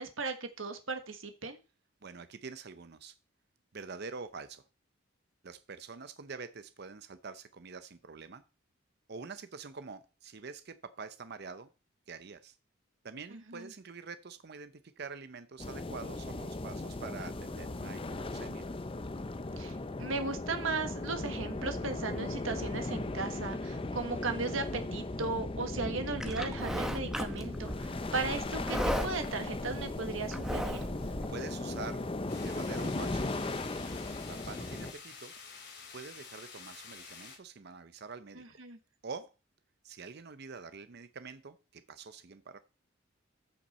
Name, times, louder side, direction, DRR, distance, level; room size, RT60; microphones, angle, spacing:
voice 1, 0.0-1.6 13.5-13.7 19.6-30.8 38.3-38.8, right 3 dB, 75° right, 7 dB, 1.5 m, -36 dB
voice 2, 2.0-3.2 3.7-4.6 5.4-8.4 9.1-11.7 12.1-12.5 13.0-18.7 31.0-32.1 32.4-33.3 34.1-35.3 35.9-38.4 39.0-39.3 39.8-42.6, right 4 dB, 50° right, 12 dB, 0.6 m, -46 dB
sound 1, 15.6-34.9, left 2 dB, 25° left, 0.6 m, -37 dB
Livestock farm animals working animals, 26.2-31.2, equal, ahead, 1.0 m, -37 dB
sound 2, 32.3-37.4, left 5 dB, 55° left, 3.3 m, -49 dB
13.5 x 5.8 x 4.2 m, 0.33 s
head